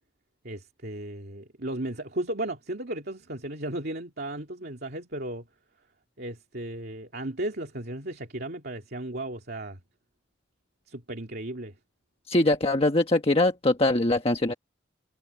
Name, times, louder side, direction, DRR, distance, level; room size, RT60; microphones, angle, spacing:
voice 1, 0.4-5.4 6.2-9.8 10.9-11.8, right 1 dB, 55° right, 2.7 m, -35 dB
voice 2, 12.3-14.5, left 2 dB, 30° left, 1.3 m, -22 dB
head